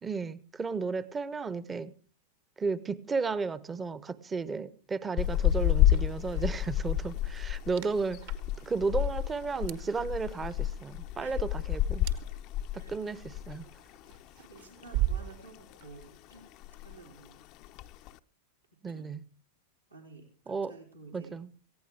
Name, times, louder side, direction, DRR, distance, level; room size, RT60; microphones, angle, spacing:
voice 1, 0.0-1.9 2.6-8.2 8.6-12.1 12.7-13.6 18.8-19.2 20.5-20.7 21.1-21.5, right 4 dB, 15° right, 18 dB, 0.8 m, -33 dB
sound 1, 5.2-13.7 13.9-14.2 14.6-15.4 15.7-16.1 16.4-16.5 16.6-17.1 17.6-18.1, left 12 dB, 40° left, 0.6 m, -30 dB
sound 2, 5.9-17.1, right 14 dB, 55° right, 1.5 m, -41 dB
voice 2, 14.5-16.5 16.8-17.4 18.9-19.2 19.9-21.3, right 3 dB, 80° right, 0 dB, 3.2 m, -51 dB
18.5 x 15.5 x 3.5 m, 0.39 s
figure-of-eight pair, 90°, 0 cm